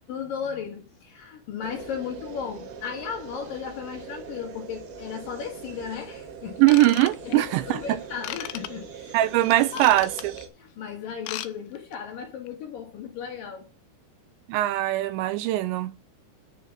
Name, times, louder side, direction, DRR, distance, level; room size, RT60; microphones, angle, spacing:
voice 1, 0.1-6.6 7.2-9.2 9.7-9.9 10.6-13.6, left 7 dB, 55° left, 3.3 m, -35 dB
sound 1, 1.6-10.5, right 6 dB, 60° right, 3.4 m, -41 dB
Ratchet pawl / Tools, 6.6-7.6 8.2-8.7 9.5-10.4 11.1-11.5 11.8-12.0 12.5-12.6, left 14 dB, 80° left, 2.7 m, -36 dB
voice 2, 6.6-7.8 9.1-10.3 14.5-15.9, right 16 dB, 80° right, 2.8 m, -21 dB
10.5 x 5.5 x 7.1 m
omnidirectional pair, 5.4 m